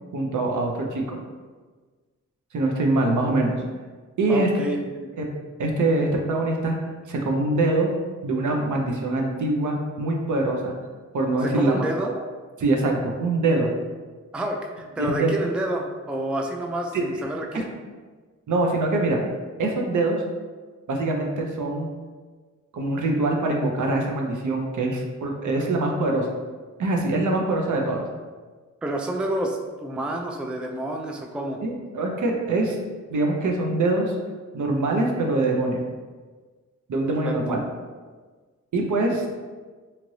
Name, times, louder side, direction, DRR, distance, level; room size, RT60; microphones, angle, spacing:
voice 1, 0.1-1.2 2.5-3.6 4.2-4.5 5.2-5.3 5.6-6.8 7.1-7.9 8.2-10.7 11.1-12.1 12.6-13.7 15.0-15.3 16.9-17.0 18.5-19.2 19.6-20.2 20.9-21.9 22.7-26.3 26.8-28.0 31.6-32.8 33.1-34.1 34.5-35.8 36.9-37.6 38.7-39.3, right 2 dB, 65° right, 1 dB, 0.6 m, -24 dB
voice 2, 4.3-5.1 11.4-12.1 14.3-17.7 28.8-31.6 37.2-37.4, right 1 dB, 5° right, 2 dB, 0.3 m, -29 dB
2.9 x 2.5 x 3.1 m, 1.4 s
cardioid pair, 45°, 33 cm